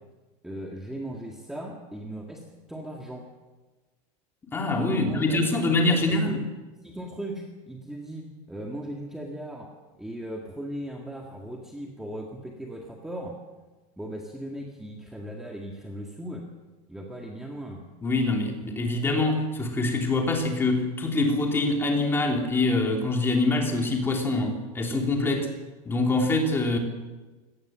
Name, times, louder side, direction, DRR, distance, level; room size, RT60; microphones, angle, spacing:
voice 1, 0.4-2.4 2.7-3.3 4.9-6.4 6.8-9.7 10.0-13.4 14.0-16.5 16.9-17.8, right 1 dB, 5° right, 0 dB, 1.9 m, -38 dB
voice 2, 4.5-6.4 18.0-25.5 25.9-26.8, left 2 dB, 10° left, 2 dB, 3.0 m, -24 dB
24.5 x 18.5 x 7.5 m, 1.2 s
supercardioid pair, 170°, 18 cm